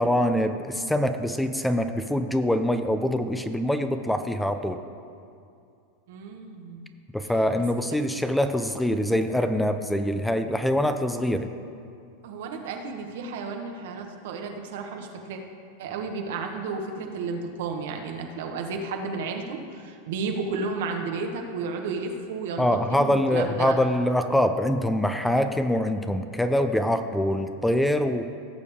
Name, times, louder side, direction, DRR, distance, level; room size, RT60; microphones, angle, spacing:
voice 1, 0.0-4.8 7.1-11.5 22.6-28.3, left 1 dB, 5° left, 8 dB, 0.5 m, -24 dB
voice 2, 6.1-6.9 12.2-15.4 15.8-23.8, right 4 dB, 70° right, 3 dB, 1.3 m, -32 dB
17.0 x 6.6 x 3.6 m, 2.4 s
hypercardioid pair, 110°, 0 cm